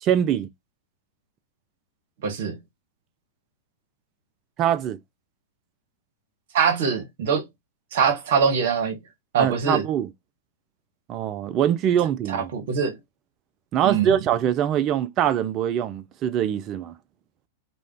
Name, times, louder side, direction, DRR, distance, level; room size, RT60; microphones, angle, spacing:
voice 1, 0.0-0.5 4.6-5.0 9.4-10.1 11.1-12.5 13.7-16.9, right 10 dB, 35° right, 0.4 m, -23 dB
voice 2, 2.2-2.6 6.5-7.5 7.9-9.0 9.3-9.8 12.3-12.9 13.8-14.2, right 6 dB, 60° right, 0.9 m, -23 dB
2.4 x 2.1 x 3.5 m
figure-of-eight pair, 100°, 0 cm